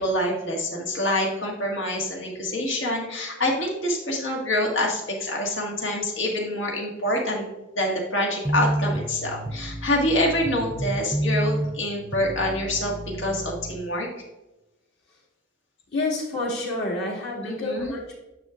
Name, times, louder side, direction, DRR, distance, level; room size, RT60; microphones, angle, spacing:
voice 1, 0.0-7.4 7.8-14.1 17.4-17.9, left 1 dB, 80° left, -1 dB, 1.9 m, -26 dB
sound 1, 8.4-13.8, right 1 dB, 10° right, 0.5 m, -29 dB
voice 2, 15.9-18.1, left 2 dB, 60° left, -4 dB, 2.4 m, -28 dB
9.7 x 6.4 x 2.6 m, 1.0 s
head